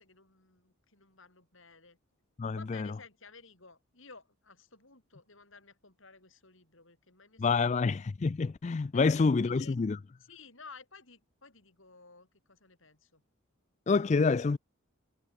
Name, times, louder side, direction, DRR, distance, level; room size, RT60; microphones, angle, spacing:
voice 1, 0.0-2.0 2.6-8.0 8.9-9.8 10.2-13.2, left 4 dB, 65° left, 6.3 m, -54 dB
voice 2, 2.4-2.9 7.4-10.0 13.9-14.6, left 4 dB, 30° left, 0.3 m, -27 dB
head